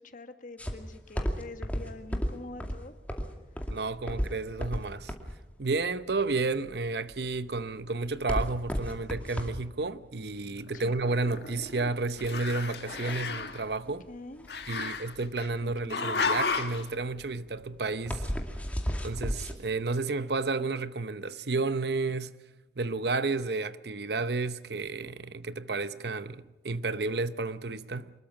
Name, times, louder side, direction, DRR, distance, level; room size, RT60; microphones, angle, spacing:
voice 1, 0.0-2.9 10.7-11.0 14.1-14.5 14.7-15.0 15.6-16.4, left 2 dB, 45° left, 1.6 m, -45 dB
sound 1, 0.6-19.5, equal, 10° left, 2.4 m, -35 dB
voice 2, 3.7-5.1 5.6-14.1 14.7-18.3 19.0-22.3 22.8-28.1, right 3 dB, 65° right, 0.9 m, -31 dB
Growling, 10.7-11.9 12.2-13.6 14.5-15.5 15.9-16.8, left 4 dB, 65° left, 1.7 m, -32 dB
25.0 x 21.0 x 6.1 m
head